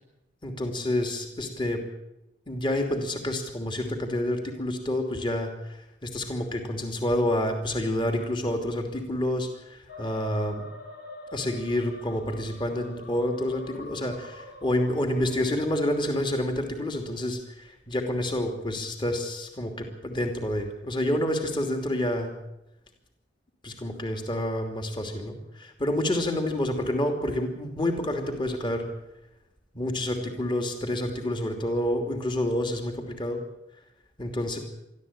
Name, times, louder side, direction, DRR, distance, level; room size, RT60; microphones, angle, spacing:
voice 1, 0.4-1.8 2.5-10.7 11.3-22.4 23.6-28.9 29.7-33.4 34.2-34.6, left 1 dB, 30° left, 4 dB, 2.9 m, -28 dB
sound 1, 9.9-16.2, left 2 dB, 65° left, 3.1 m, -46 dB
22.5 x 14.0 x 8.8 m, 0.88 s
head